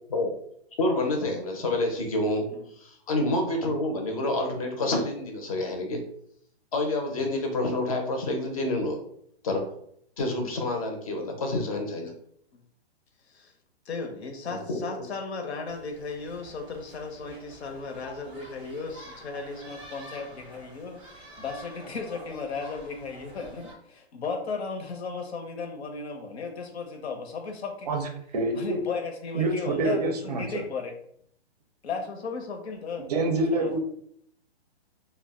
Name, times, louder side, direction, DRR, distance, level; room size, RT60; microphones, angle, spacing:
voice 1, 0.8-2.5 2.8-6.0 6.7-9.0 9.4-9.6 10.2-12.1 14.5-14.8, left 2 dB, 35° left, 2 dB, 0.5 m, -28 dB
voice 2, 13.9-27.9 28.6-30.9 31.8-33.8, left 4 dB, 75° left, 4 dB, 0.7 m, -35 dB
sound 1, 15.6-23.7, right 1 dB, 5° right, 0.7 m, -48 dB
voice 3, 27.9-28.9 29.3-30.6 33.1-33.8, right 2 dB, 40° right, 3 dB, 0.5 m, -27 dB
2.3 x 2.1 x 3.5 m, 0.67 s
hypercardioid pair, 160°, 33 cm